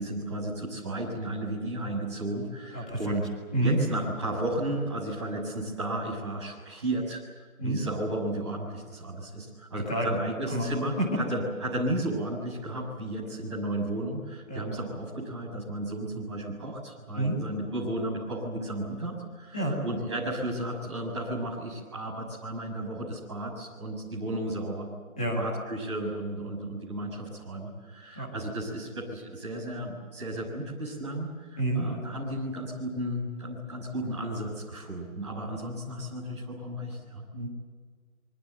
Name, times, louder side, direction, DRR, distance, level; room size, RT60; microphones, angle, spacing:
voice 1, 0.0-3.3 3.6-7.2 7.6-24.9 25.3-37.2, right 1 dB, 20° right, -5 dB, 6.4 m, -34 dB
voice 2, 2.7-3.0 3.5-3.8 7.6-7.8 9.9-10.2 10.5-10.7 14.5-14.6 17.1-17.4 19.5-19.8 25.2-25.4 28.1-28.3 31.6-31.8 37.3-37.5, right 1 dB, 5° left, -7 dB, 1.9 m, -28 dB
26.0 x 24.5 x 8.1 m, 1.5 s
figure-of-eight pair, 175°, 42 cm